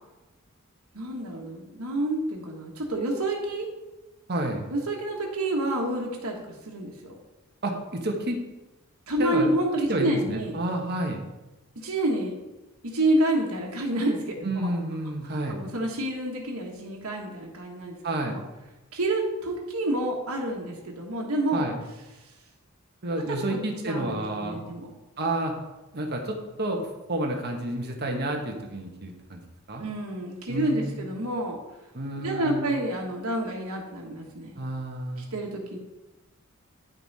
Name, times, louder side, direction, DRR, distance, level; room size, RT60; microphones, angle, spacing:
voice 1, 0.9-3.7 4.7-6.4 6.6-7.2 9.1-10.6 11.7-12.4 12.8-14.7 15.5-18.0 18.2-18.4 18.9-21.7 23.3-23.6 23.8-24.9 29.8-31.6 32.2-34.6 35.3-35.8, right 1 dB, 90° right, -1 dB, 1.5 m, -28 dB
voice 2, 4.3-4.7 7.6-8.4 9.2-9.5 9.9-11.2 14.4-15.6 18.0-18.4 21.5-21.8 23.0-24.6 25.2-25.5 25.9-29.4 29.7-29.8 30.5-31.0 31.9-32.7 34.6-35.3, right 1 dB, 50° right, 2 dB, 1.4 m, -30 dB
10.5 x 5.6 x 4.2 m, 1.0 s
head